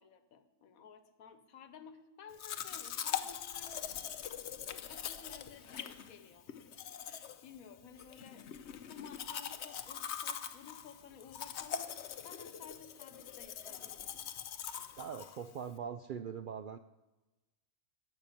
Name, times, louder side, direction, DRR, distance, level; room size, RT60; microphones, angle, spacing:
voice 1, 0.0-3.9 4.7-6.4 6.7-6.8 7.1-8.5 8.9-11.9 12.2-14.1, left 6 dB, 90° left, 11 dB, 1.4 m, -54 dB
Domestic sounds home sounds, 2.4-15.8, left 9 dB, 60° left, 0.9 m, -43 dB
voice 2, 15.0-16.8, right 7 dB, 85° right, 10 dB, 0.4 m, -42 dB
14.0 x 6.0 x 9.0 m, 1.1 s
omnidirectional pair, 1.4 m